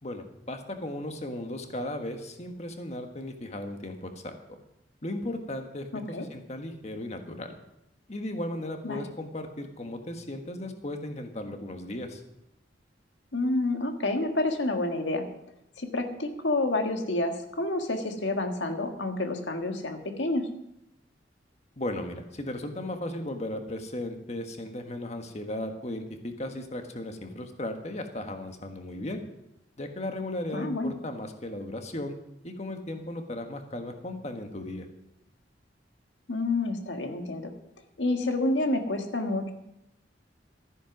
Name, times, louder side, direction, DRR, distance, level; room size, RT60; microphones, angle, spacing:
voice 1, 0.0-4.4 5.0-7.5 8.1-12.2 21.8-29.2 29.8-32.1 32.4-34.9, left 1 dB, 40° left, 5 dB, 1.5 m, -36 dB
voice 2, 5.9-6.2 8.8-9.0 13.3-15.3 15.8-20.5 30.5-30.9 36.3-37.5 38.0-39.5, left 2 dB, 90° left, 5 dB, 1.7 m, -29 dB
13.5 x 10.0 x 6.1 m, 0.84 s
head